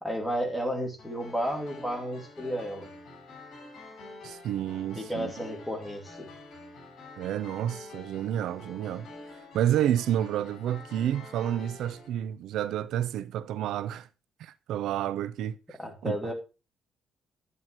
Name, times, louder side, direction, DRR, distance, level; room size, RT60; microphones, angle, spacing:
voice 1, 0.0-2.9 4.9-6.3 15.8-16.3, equal, 5° left, 2.5 m, -32 dB
sound 1, 1.0-12.1, left 2 dB, 60° left, 6.9 m, -47 dB
voice 2, 4.2-5.3 7.2-9.1 9.5-14.1 14.4-15.6 16.0-16.3, right 11 dB, 90° right, 0.5 m, -30 dB
11.0 x 9.1 x 3.0 m
cardioid pair, 150°, 0 cm